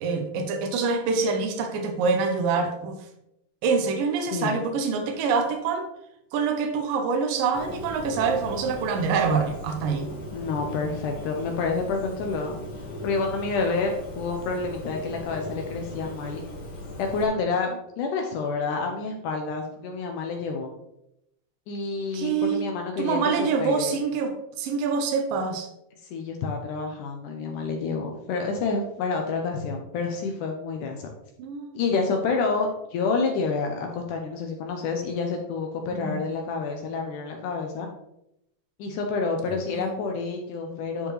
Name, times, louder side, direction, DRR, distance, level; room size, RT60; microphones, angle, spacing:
voice 1, 0.0-3.0 3.6-5.9 6.3-10.1 22.1-22.6 23.0-25.7 31.4-31.7 35.9-36.2 39.5-40.1, right 5 dB, 80° right, 5 dB, 2.6 m, -26 dB
voice 2, 4.3-4.6 10.3-12.6 13.0-16.4 17.0-17.7 18.0-20.7 21.7-23.9 26.1-31.1 31.7-37.9 38.8-41.1, left 4 dB, 75° left, 3 dB, 2.2 m, -28 dB
Bird, 7.5-17.3, left 1 dB, 45° left, 2.2 m, -38 dB
11.0 x 5.1 x 3.2 m, 0.82 s
omnidirectional pair, 3.9 m